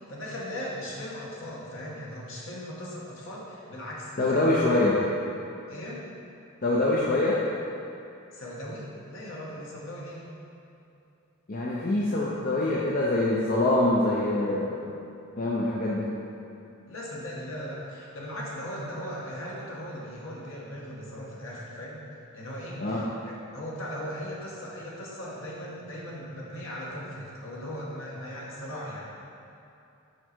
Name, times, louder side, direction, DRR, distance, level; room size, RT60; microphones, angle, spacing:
voice 1, 0.0-4.5 5.7-6.1 8.3-10.2 16.9-22.0 22.3-29.1, equal, 65° left, -5 dB, 1.4 m, -38 dB
voice 2, 4.2-5.0 6.6-7.4 11.5-14.9 15.4-16.1 22.8-23.0, left 2 dB, 40° left, -5 dB, 0.6 m, -24 dB
6.5 x 4.6 x 4.5 m, 2.7 s
head